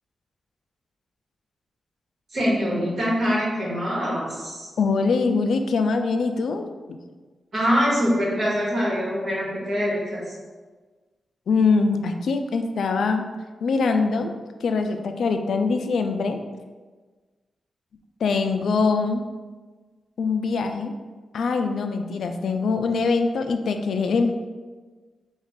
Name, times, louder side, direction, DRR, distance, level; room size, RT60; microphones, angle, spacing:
voice 1, 2.3-4.7 7.5-10.3, equal, 50° right, -5 dB, 1.4 m, -24 dB
voice 2, 4.8-7.0 11.5-13.3 13.6-14.3 14.6-16.4 18.2-19.2 20.2-20.9 21.3-24.3, left 4 dB, 80° left, 6 dB, 0.3 m, -23 dB
4.7 x 2.3 x 3.6 m, 1.3 s
wide cardioid pair, 125°, 0 cm